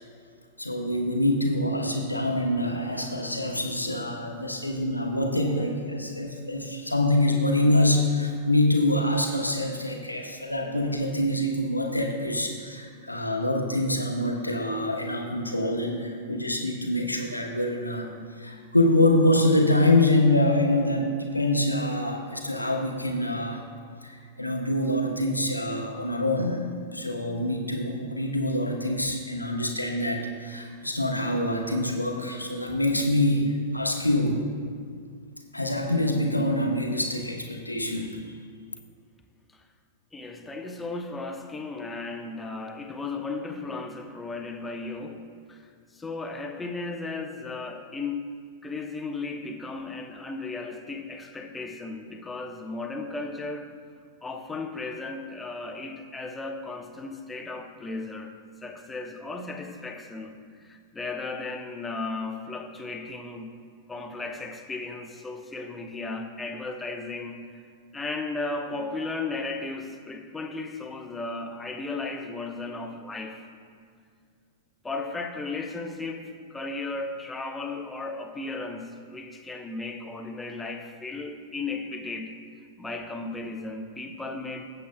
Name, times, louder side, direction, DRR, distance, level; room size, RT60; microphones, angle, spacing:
voice 1, 0.6-18.1 18.4-23.6 24.0-26.7 26.9-34.4 35.5-38.2, left 1 dB, 90° left, 2 dB, 1.0 m, -25 dB
voice 2, 40.1-53.7 54.2-58.3 58.6-63.6 63.9-67.4 67.9-73.4 74.8-82.4 82.8-84.7, left 3 dB, 10° left, 4 dB, 0.9 m, -35 dB
18.0 x 8.0 x 2.2 m, 2.1 s
figure-of-eight pair, 100°, 0 cm